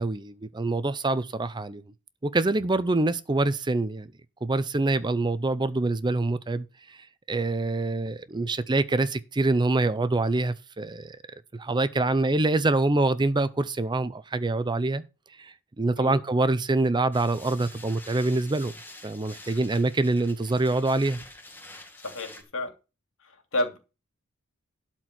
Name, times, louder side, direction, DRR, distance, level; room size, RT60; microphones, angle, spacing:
voice 1, 0.0-1.8 2.2-4.1 4.4-7.0 7.3-11.2 11.6-15.0 15.4-18.7 19.0-21.2, right 2 dB, 20° right, 0.5 m, -25 dB
sound 1, 17.1-22.4, left 2 dB, 10° left, 2.1 m, -47 dB
voice 2, 22.0-22.7 23.2-23.8, left 1 dB, 65° left, 2.7 m, -31 dB
12.0 x 4.5 x 7.5 m
head